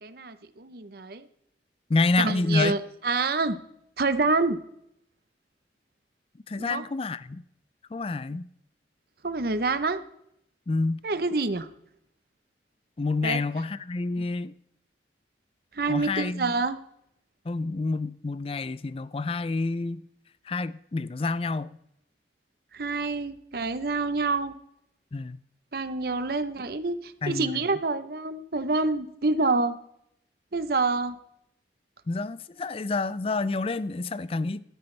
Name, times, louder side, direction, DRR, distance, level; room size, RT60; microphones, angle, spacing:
voice 1, 0.0-1.3 2.2-3.6 4.0-4.6 6.6-6.8 9.2-10.0 11.0-11.7 13.2-13.4 14.2-14.3 15.7-16.8 22.7-24.5 25.7-29.8 30.5-31.2, right 3 dB, 55° right, 0.8 m, -27 dB
voice 2, 1.9-2.7 6.5-7.4 7.9-8.4 10.7-11.0 13.0-14.5 15.9-16.5 17.5-20.0 20.5-21.8 25.1-25.4 27.2-27.6 32.1-34.6, left 3 dB, 30° left, 0.4 m, -28 dB
14.0 x 12.5 x 3.3 m
head